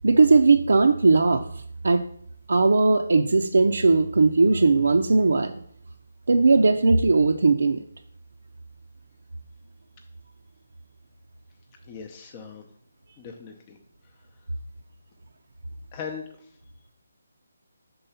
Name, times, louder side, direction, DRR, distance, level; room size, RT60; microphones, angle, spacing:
voice 1, 0.0-1.4 1.8-2.0 2.5-5.5 6.3-7.8, right 3 dB, 75° right, 3 dB, 0.4 m, -18 dB
voice 2, 11.8-12.7 13.2-13.8 15.9-16.6, left 6 dB, 25° left, 3 dB, 0.6 m, -39 dB
5.4 x 3.6 x 5.5 m, 0.64 s
figure-of-eight pair, 160°, 0 cm